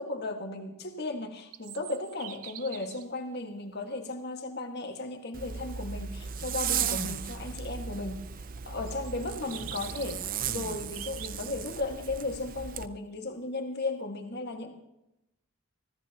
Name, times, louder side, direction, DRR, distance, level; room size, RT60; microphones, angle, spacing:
voice 1, 0.0-8.3 8.7-14.7, left 2 dB, 45° left, 3 dB, 1.8 m, -35 dB
sound 1, 1.5-3.1 4.1-4.2 8.9-11.5, right 13 dB, 90° right, 0.6 m, -45 dB
Zipper (clothing), 5.3-12.9, right 7 dB, 40° right, 0.5 m, -36 dB
24.5 x 15.5 x 2.9 m, 0.89 s
head